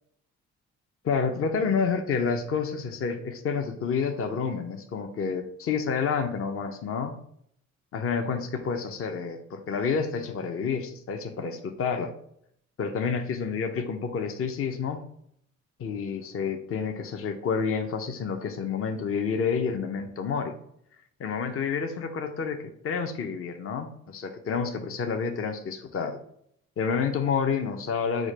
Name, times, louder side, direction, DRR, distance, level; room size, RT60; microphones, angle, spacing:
voice 1, 1.0-7.2 7.9-12.1 12.8-15.1 15.8-20.5 21.2-26.2 26.8-28.3, left 6 dB, 45° left, 6 dB, 0.7 m, -29 dB
4.9 x 2.2 x 4.8 m, 0.68 s
cardioid pair, 90°, 30 cm